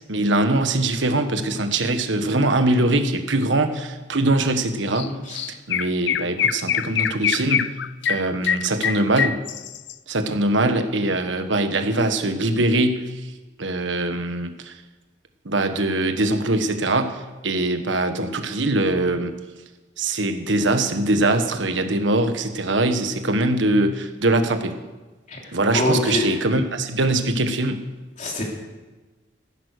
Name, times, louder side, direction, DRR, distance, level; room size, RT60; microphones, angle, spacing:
voice 1, 0.1-5.1 5.7-7.8 8.1-9.4 10.1-13.2 13.6-14.8 15.4-19.3 20.0-24.7 25.5-27.9, right 2 dB, 80° right, 7 dB, 1.4 m, -22 dB
Chirp tweet, 4.9-5.1 5.3-9.9, left 8 dB, 65° left, 0.5 m, -24 dB
voice 2, 5.0-5.4 25.3-25.4 25.7-26.2 28.2-28.4, left 2 dB, 40° left, -1 dB, 3.3 m, -24 dB
15.0 x 11.0 x 6.6 m, 1.2 s
head